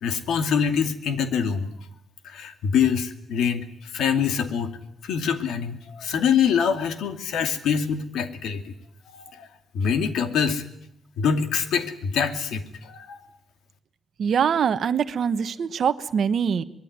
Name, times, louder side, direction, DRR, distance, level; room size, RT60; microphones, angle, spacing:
voice 1, 0.0-1.7 2.2-4.8 5.0-8.7 9.1-9.5 9.7-10.6 11.2-13.2, left 7 dB, 90° left, 8 dB, 2.5 m, -25 dB
voice 2, 14.2-16.6, right 7 dB, 45° right, 10 dB, 1.2 m, -23 dB
24.5 x 21.5 x 9.5 m, 0.75 s
cardioid pair, 170°, 0 cm